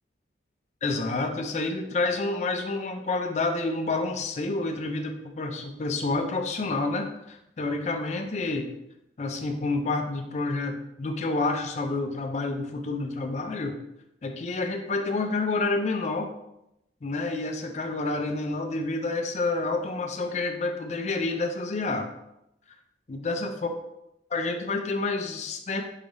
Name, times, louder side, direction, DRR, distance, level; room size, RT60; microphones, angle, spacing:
voice 1, 0.8-8.7 9.2-13.8 14.2-16.3 17.0-22.1 23.1-23.7 24.3-25.8, left 3 dB, 40° left, 4 dB, 0.4 m, -29 dB
4.7 x 3.2 x 2.6 m, 0.84 s
head